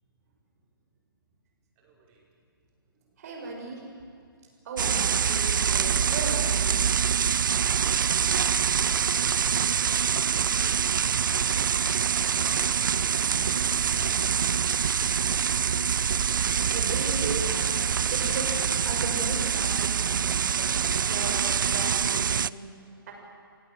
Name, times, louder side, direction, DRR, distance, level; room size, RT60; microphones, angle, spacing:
voice 1, 1.8-2.2 3.0-3.2 3.4-3.8 7.2-16.8 22.7-23.1, right 2 dB, 25° right, -3 dB, 5.7 m, -50 dB
voice 2, 3.2-3.8 4.6-6.8 7.4-7.5 16.7-17.8 18.1-20.7 21.0-22.6 23.1-23.2, right 3 dB, 40° right, 0 dB, 7.2 m, -36 dB
sound 1, 4.8-22.5, right 7 dB, 60° right, 0.5 m, -25 dB
27.5 x 18.0 x 8.0 m, 2.3 s
figure-of-eight pair, 140°, 12 cm